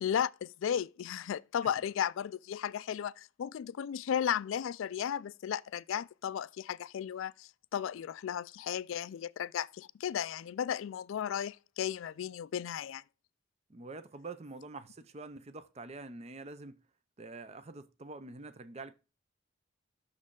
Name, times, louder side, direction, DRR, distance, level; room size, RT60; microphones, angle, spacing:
voice 1, 0.0-13.0, left 9 dB, 70° left, 0.3 m, -35 dB
voice 2, 13.7-16.8 17.2-18.9, right 3 dB, 30° right, 0.6 m, -46 dB
6.5 x 6.3 x 3.7 m
head